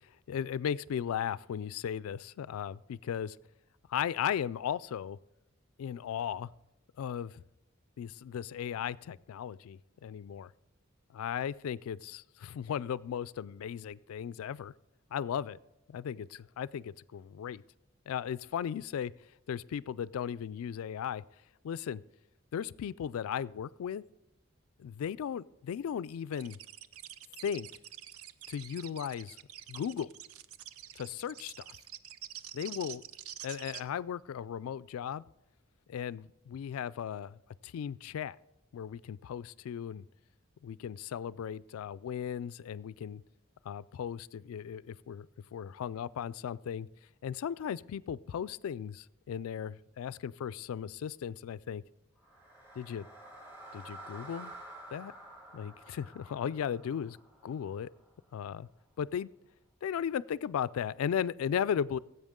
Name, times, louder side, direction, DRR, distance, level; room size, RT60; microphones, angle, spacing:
voice 1, 0.3-3.4 3.9-5.2 5.8-6.5 7.0-7.4 8.0-10.5 11.1-14.7 15.1-15.6 15.9-17.6 18.1-19.1 19.5-21.2 21.6-22.0 22.5-24.0 24.8-26.6 27.4-27.7 28.5-29.4 29.7-30.1 31.0-31.6 32.5-33.0 33.4-35.2 35.9-38.4 38.7-40.0 40.6-43.2 43.7-45.3 45.5-46.9 47.2-51.8 52.8-53.1 53.7-54.5 54.9-55.1 55.5-57.2 57.4-57.9 58.3-58.7 59.0-59.3 59.8-62.0, left 8 dB, 80° left, 22 dB, 0.3 m, -36 dB
sound 1, 26.3-33.8, right 11 dB, 80° right, 0.5 m, -47 dB
sound 2, 52.2-58.3, right 1 dB, 10° right, 2.5 m, -50 dB
16.0 x 8.0 x 3.7 m, 0.88 s
head